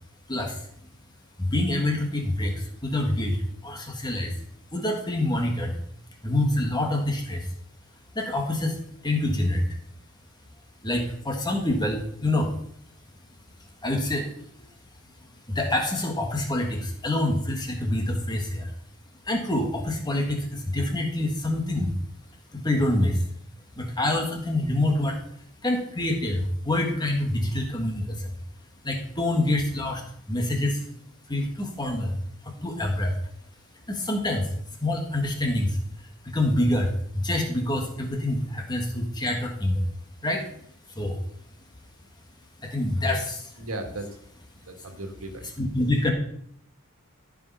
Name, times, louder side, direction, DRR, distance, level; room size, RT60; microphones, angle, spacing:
voice 1, 0.3-0.7 1.4-4.4 4.7-5.8 6.2-7.5 8.2-9.6 10.8-12.5 13.8-14.3 15.5-18.7 19.2-21.9 22.5-23.2 23.8-25.2 25.6-28.3 28.8-30.9 31.3-32.2 32.4-33.2 33.9-34.5 34.8-35.8 36.2-39.9 40.2-40.4 41.0-41.2 42.6-43.5 45.6-46.1, left 1 dB, 20° left, 2 dB, 1.8 m, -26 dB
voice 2, 43.6-44.1 44.6-45.5, right 2 dB, 75° right, 5 dB, 1.8 m, -36 dB
13.5 x 5.3 x 5.6 m, 0.66 s
head